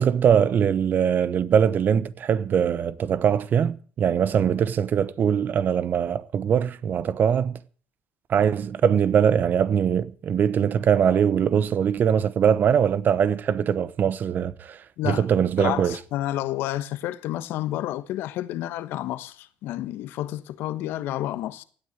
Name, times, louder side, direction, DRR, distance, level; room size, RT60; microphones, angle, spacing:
voice 1, 0.0-7.6 8.3-14.8 15.0-16.0, right 8 dB, 55° right, 1.1 m, -22 dB
voice 2, 15.6-21.6, left 14 dB, 80° left, 1.2 m, -30 dB
16.5 x 9.6 x 8.1 m
supercardioid pair, 70°, 4 cm